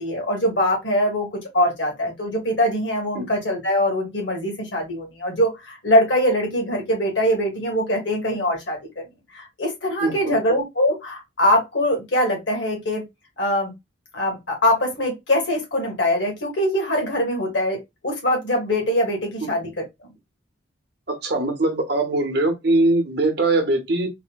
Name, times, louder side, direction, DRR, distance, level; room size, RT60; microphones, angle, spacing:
voice 1, 0.0-8.8 9.3-13.0 13.4-13.7 14.1-19.7, left 1 dB, 70° left, 1.5 m, -22 dB
voice 2, 10.0-10.4 19.4-19.5 21.1-24.1, right 2 dB, 55° right, 0.8 m, -21 dB
4.1 x 2.1 x 2.3 m
head